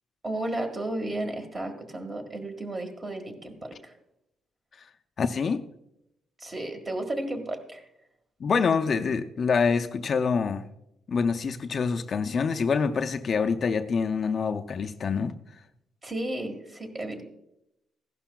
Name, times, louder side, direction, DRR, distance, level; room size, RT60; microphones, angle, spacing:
voice 1, 0.2-3.9 6.4-7.8 16.0-17.2, right 1 dB, 25° right, 1.6 m, -33 dB
voice 2, 5.2-5.6 8.4-10.7 11.1-15.3, left 5 dB, 45° left, 0.5 m, -26 dB
15.5 x 11.5 x 2.3 m
cardioid pair, 125°, 0 cm